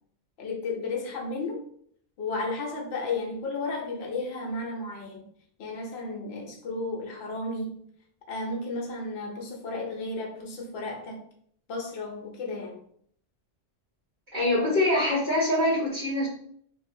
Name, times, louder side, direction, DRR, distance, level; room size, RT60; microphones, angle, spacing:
voice 1, 0.4-1.6 2.2-5.2 5.6-7.8 8.3-11.2 11.7-12.8, left 3 dB, 70° left, 0 dB, 0.9 m, -33 dB
voice 2, 14.3-16.3, left 1 dB, 45° right, -10 dB, 1.1 m, -24 dB
2.6 x 2.2 x 2.6 m, 0.63 s
omnidirectional pair, 1.2 m